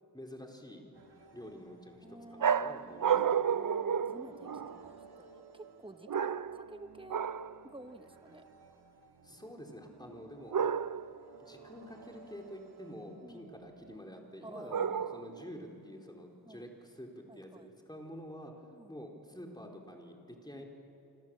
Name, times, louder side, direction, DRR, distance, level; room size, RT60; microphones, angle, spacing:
voice 1, 0.1-0.8 1.3-3.5 9.2-10.6 11.4-18.5 18.9-20.6, equal, 10° left, 1 dB, 4.1 m, -48 dB
sound 1, 0.9-14.0, right 4 dB, 90° right, 2.1 m, -57 dB
voice 2, 2.0-3.1 3.5-7.3 7.6-8.4 10.0-10.2 13.2-13.5 14.4-14.9 16.4-16.6 17.3-17.7 18.7-19.0 20.5-20.6, right 2 dB, 15° right, 9 dB, 1.2 m, -51 dB
sound 2, 2.4-4.9 6.1-6.7 7.1-7.6 10.5-11.2 14.7-15.4, right 7 dB, 55° right, 0.6 m, -31 dB
28.0 x 26.0 x 7.8 m, 2.8 s
wide cardioid pair, 75°, 38 cm